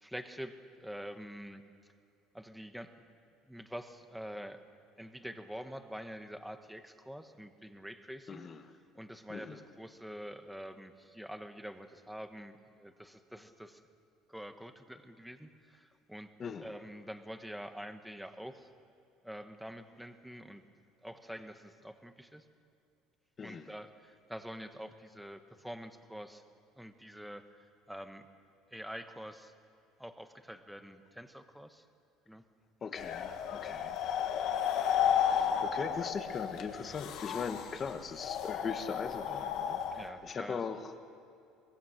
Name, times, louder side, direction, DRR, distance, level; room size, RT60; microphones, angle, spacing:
voice 1, 0.0-1.6 2.3-3.0 3.5-4.6 5.0-8.5 8.9-13.8 14.3-16.3 16.6-18.7 19.2-20.6 21.0-22.4 23.4-26.4 26.7-27.6 27.9-28.3 28.7-29.5 30.0-31.8 32.3-32.4 36.8-36.9 40.0-40.6, equal, ahead, 8 dB, 1.0 m, -46 dB
voice 2, 8.3-8.6 9.3-9.6 16.4-16.7 23.4-23.7 32.8-34.0 35.1-40.9, left 5 dB, 25° left, 8 dB, 1.2 m, -40 dB
sound 1, 33.0-40.1, left 8 dB, 50° left, 1.5 m, -33 dB
23.0 x 21.0 x 6.5 m, 2.5 s
cardioid pair, 155°, 0 cm